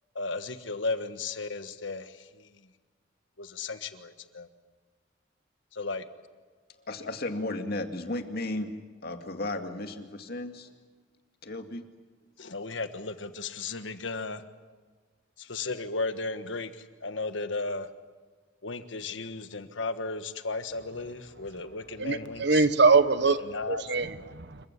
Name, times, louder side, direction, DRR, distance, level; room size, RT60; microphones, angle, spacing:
voice 1, 0.1-2.1 3.4-4.5 5.7-6.0 12.4-14.4 15.4-16.7 17.0-17.9 18.6-22.6 23.5-23.8, left 3 dB, 80° left, 1.4 m, -34 dB
voice 2, 6.7-8.7 9.0-10.7 11.4-11.8, left 2 dB, 55° left, 2.2 m, -34 dB
voice 3, 22.0-23.4 23.7-24.7, right 4 dB, 65° right, 1.2 m, -23 dB
27.5 x 15.5 x 9.8 m
head